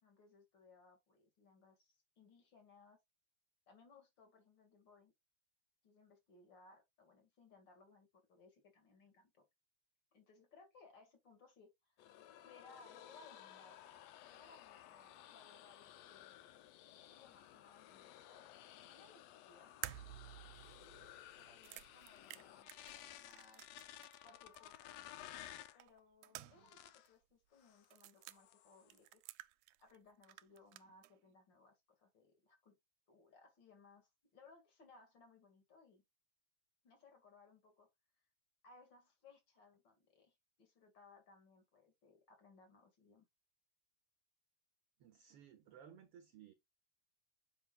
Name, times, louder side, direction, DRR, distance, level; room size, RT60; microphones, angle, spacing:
voice 1, 0.0-3.0 3.7-5.1 5.8-9.5 10.1-12.0 12.4-16.3 16.9-18.6 18.9-19.9 21.3-25.0 25.7-29.2 29.8-32.8 33.1-36.0 36.8-37.9 38.6-43.3, left 3 dB, 40° left, 2.7 m, -65 dB
sound 1, 12.0-25.8 26.5-27.1 27.6-27.9 28.2-29.0, left 12 dB, 75° left, 1.8 m, -56 dB
sound 2, 19.8-24.3 24.5-24.6 25.8-26.8 27.1-27.2 27.8-28.4 28.9-30.0 30.2-31.1, right 16 dB, 90° right, 2.0 m, -52 dB
voice 2, 45.0-46.5, right 8 dB, 70° right, 1.5 m, -59 dB
8.0 x 6.0 x 2.4 m
omnidirectional pair, 3.4 m